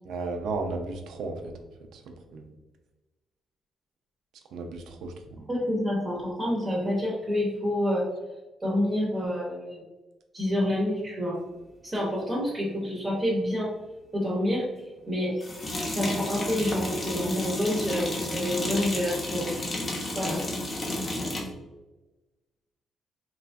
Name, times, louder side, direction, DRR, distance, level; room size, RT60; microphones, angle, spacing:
voice 1, 0.1-1.5 1.9-2.4 4.5-5.5 21.5-21.6, right 3 dB, 80° right, 5 dB, 0.4 m, -34 dB
voice 2, 5.5-8.1 8.6-9.8 10.3-11.4 11.8-13.7 14.1-14.7 15.1-15.4 15.9-19.9 20.2-20.4, left 1 dB, 25° right, -4 dB, 0.7 m, -28 dB
sound 1, 11.9-12.0 15.4-21.5, left 1 dB, 35° left, 0.7 m, -31 dB
2.9 x 2.3 x 2.5 m, 1.1 s
cardioid pair, 90°, 0 cm